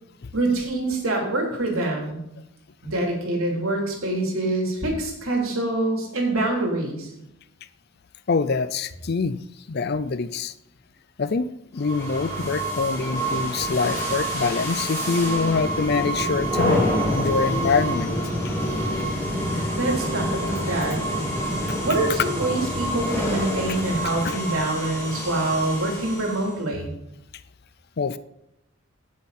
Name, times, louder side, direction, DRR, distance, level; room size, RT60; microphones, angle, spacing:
voice 1, 0.3-2.2 2.8-7.1 19.5-21.0 21.8-26.9, right 2 dB, 75° right, 0 dB, 3.5 m, -25 dB
voice 2, 8.3-9.4 9.7-10.5 11.2-18.1 21.7-21.8 24.2-24.4 28.0-28.2, left 4 dB, 45° left, 14 dB, 0.5 m, -25 dB
sound 1, 11.8-26.6, equal, 15° left, 3.6 m, -27 dB
16.5 x 7.2 x 4.3 m, 0.83 s
head